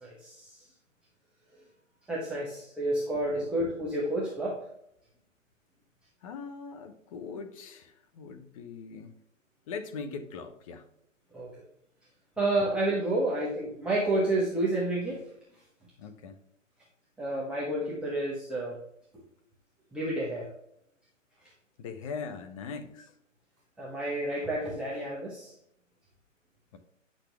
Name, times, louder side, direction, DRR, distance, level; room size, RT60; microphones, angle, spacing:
voice 1, 0.0-0.6 2.1-4.6 11.3-11.6 12.4-15.2 17.2-18.7 19.1-19.2 19.9-20.5 23.8-25.5, right 1 dB, 5° right, -7 dB, 0.9 m, -30 dB
voice 2, 6.2-9.2 9.7-10.9 12.4-12.5 16.0-16.4 21.8-23.2 26.7-26.8, left 5 dB, 25° left, 7 dB, 0.8 m, -41 dB
9.8 x 6.3 x 3.4 m, 0.74 s
hypercardioid pair, 145°, 39 cm